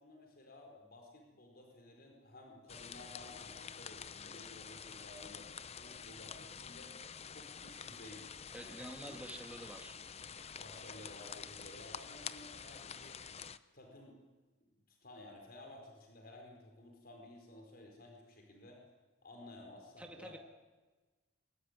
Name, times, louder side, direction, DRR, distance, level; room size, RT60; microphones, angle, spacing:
voice 1, 0.0-5.5 5.8-6.9 7.3-9.2 10.6-13.2 13.7-14.2 14.7-18.8 19.2-20.4, left 1 dB, 45° left, 2 dB, 4.5 m, -55 dB
sound 1, 2.7-13.6, left 7 dB, 30° left, 0.7 m, -48 dB
voice 2, 8.5-10.0 20.0-20.4, right 1 dB, 5° right, 3 dB, 2.3 m, -48 dB
23.0 x 21.0 x 9.8 m, 1.3 s
head